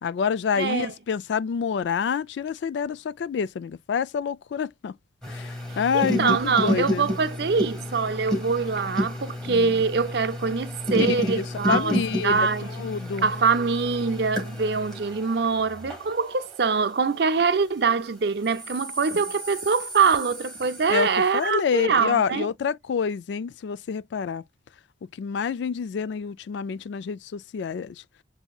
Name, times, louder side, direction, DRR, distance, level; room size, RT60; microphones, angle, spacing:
voice 1, 0.0-4.9 5.3-7.1 9.5-9.8 10.9-12.5 12.7-13.3 20.9-24.4 25.2-28.0, left 6 dB, 70° left, 0.3 m, -27 dB
voice 2, 0.6-0.9 5.9-12.0 12.2-12.7 13.2-22.5, right 5 dB, 60° right, 0.5 m, -24 dB
sound 1, 5.2-17.9 18.4-21.3, equal, 5° left, 1.5 m, -32 dB
7.0 x 2.7 x 2.3 m
head